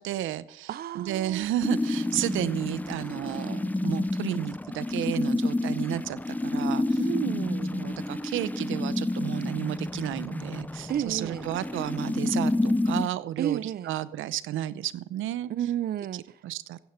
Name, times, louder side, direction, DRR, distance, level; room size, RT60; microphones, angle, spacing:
voice 1, 0.0-0.7 0.9-7.0 7.7-15.5 16.4-16.8, right 13 dB, 85° right, 0.7 m, -32 dB
voice 2, 0.7-1.5 7.0-7.7 10.9-11.5 13.4-14.0 15.5-16.4, right 10 dB, 50° right, 0.5 m, -31 dB
sound 1, 1.6-13.1, left 2 dB, 10° left, 0.6 m, -29 dB
15.5 x 9.5 x 5.8 m
cardioid pair, 90°, 20 cm